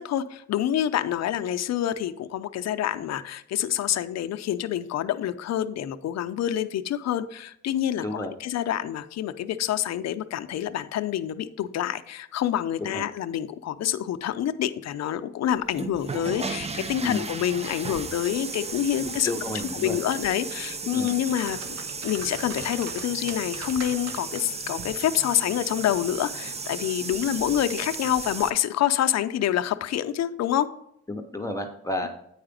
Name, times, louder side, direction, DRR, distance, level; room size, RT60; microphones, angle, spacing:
voice 1, 0.0-19.3 19.7-21.8 22.0-30.7, left 11 dB, 60° left, 9 dB, 0.6 m, -27 dB
sound 1, 15.6-28.5, right 4 dB, 20° right, 0.5 m, -35 dB
voice 2, 19.0-20.0 20.9-21.1 31.1-32.1, left 1 dB, 10° left, 3 dB, 0.8 m, -32 dB
sound 2, 19.6-20.5 20.9-24.4 24.8-25.0, right 4 dB, 60° right, 1.3 m, -42 dB
8.6 x 4.9 x 5.1 m, 0.76 s
cardioid pair, 90°, 30 cm